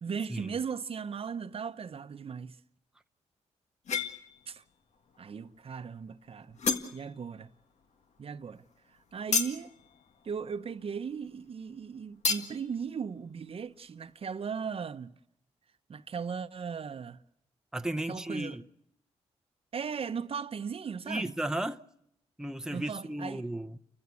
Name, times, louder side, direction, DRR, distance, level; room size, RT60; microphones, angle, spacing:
voice 1, 0.0-2.6 4.5-4.6 5.2-6.6 6.9-7.5 8.2-8.6 8.9-9.7 10.2-15.1 15.9-17.2 18.1-18.6 19.7-21.3 22.7-23.4, right 6 dB, 50° right, 0.9 m, -37 dB
sound 1, 3.8-4.5 4.9-5.5 5.9-6.0 6.4-7.4 7.7-11.5 11.7-11.8 12.2-12.7, left 5 dB, 65° left, 1.8 m, -33 dB
voice 2, 17.7-18.6 21.1-21.8 22.4-23.8, right 1 dB, 5° right, 0.8 m, -34 dB
29.5 x 15.0 x 8.4 m
cardioid pair, 75°, 12 cm